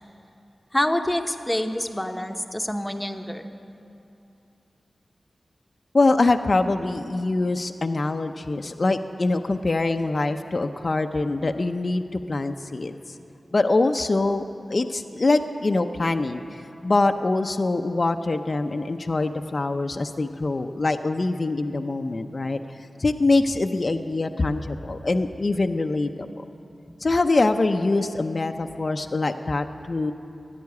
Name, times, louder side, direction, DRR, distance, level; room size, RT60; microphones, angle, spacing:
voice 1, 0.7-3.5, left 1 dB, 15° left, 6 dB, 1.0 m, -26 dB
voice 2, 5.9-13.0 13.5-22.6 23.0-26.3 27.0-30.1, left 2 dB, 50° left, 6 dB, 0.6 m, -24 dB
13.5 x 10.5 x 9.5 m, 2.7 s
cardioid pair, 45°, 0 cm